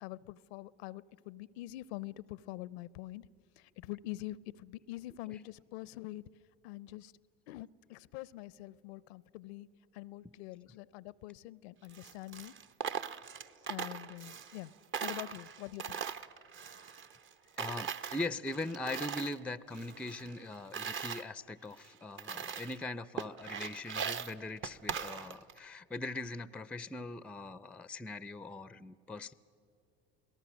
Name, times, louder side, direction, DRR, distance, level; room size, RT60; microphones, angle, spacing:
voice 1, 0.0-3.3 3.6-6.2 6.6-7.1 7.5-9.7 9.9-12.5 13.7-14.7 15.0-16.0, left 17 dB, 80° left, 21 dB, 0.5 m, -45 dB
Coin (dropping), 11.8-14.7 14.9-17.3 17.6-19.4 19.7-21.2 21.8-21.9 22.2-22.8 23.2-25.6, right 7 dB, 40° right, 0.8 m, -40 dB
voice 2, 17.6-29.3, left 2 dB, 5° left, 16 dB, 0.4 m, -41 dB
27.5 x 18.0 x 6.2 m, 2.6 s
hypercardioid pair, 85°, 32 cm